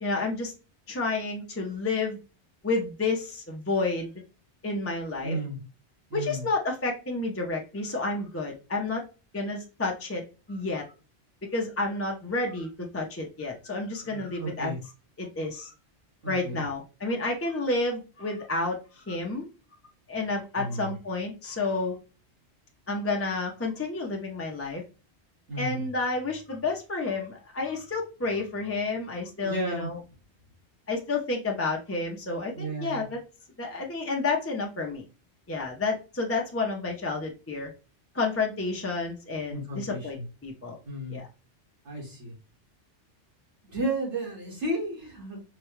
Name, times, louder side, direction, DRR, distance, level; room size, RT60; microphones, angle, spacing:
voice 1, 0.0-0.5 0.9-2.2 2.6-4.1 4.6-5.4 6.1-9.0 9.3-10.2 10.5-10.9 11.5-14.7 15.2-15.7 16.3-19.5 20.1-22.0 22.9-24.8 25.6-30.0 30.9-33.2 33.6-35.0 35.5-37.7 38.1-40.2 40.4-40.8 41.1-41.3, left 3 dB, 15° left, 0 dB, 0.5 m, -30 dB
voice 2, 5.2-5.6 6.1-6.4 14.0-14.8 16.2-16.6 20.6-21.0 25.5-25.9 29.4-29.9 32.5-33.0 39.5-40.3 40.8-41.2 41.8-42.3 43.6-45.4, right 1 dB, 85° right, -3 dB, 2.1 m, -33 dB
4.7 x 2.3 x 3.0 m, 0.32 s
omnidirectional pair, 1.2 m